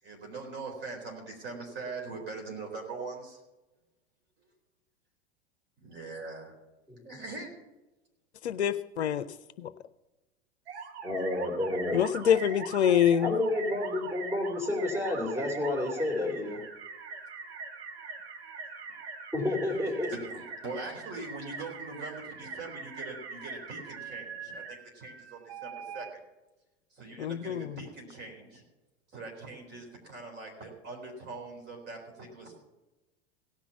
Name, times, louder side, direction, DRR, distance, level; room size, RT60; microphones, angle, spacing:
voice 1, 0.0-3.4 5.8-6.5 7.0-7.5 20.1-26.1 26.9-28.6 29.1-32.6, right 3 dB, 30° right, 2 dB, 4.0 m, -42 dB
voice 2, 8.4-9.3 9.6-9.7 11.9-13.3 27.2-27.7, left 9 dB, 70° left, 14 dB, 0.6 m, -25 dB
sound 1, 10.7-26.1, right 5 dB, 65° right, 1.6 m, -42 dB
voice 3, 11.0-12.0 13.2-16.6 19.3-20.1, left 2 dB, 5° right, 3 dB, 3.0 m, -30 dB
17.0 x 6.0 x 7.0 m, 1.0 s
figure-of-eight pair, 85°, 34 cm